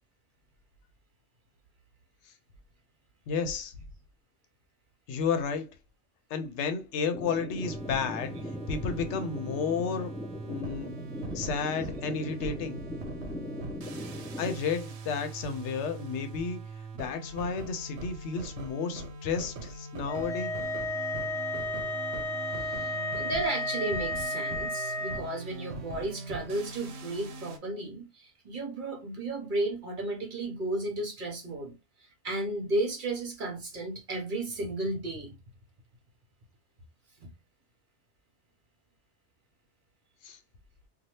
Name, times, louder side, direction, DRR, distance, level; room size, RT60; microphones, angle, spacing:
voice 1, 3.3-3.7 5.1-5.8 6.3-8.4 8.7-10.1 10.4-11.0 11.3-12.8 14.4-16.6 16.9-20.5 40.2-40.4, left 5 dB, 85° left, 0.9 m, -32 dB
sound 1, 7.1-14.5, left 1 dB, 5° left, 0.3 m, -40 dB
sound 2, 7.6-27.6, right 4 dB, 75° right, 0.9 m, -42 dB
sound 3, 20.1-25.2, left 2 dB, 40° left, 0.7 m, -33 dB
voice 2, 23.1-31.7 32.2-35.3 37.2-37.3, right 2 dB, 50° right, 1.0 m, -33 dB
2.7 x 2.3 x 3.1 m
omnidirectional pair, 1.2 m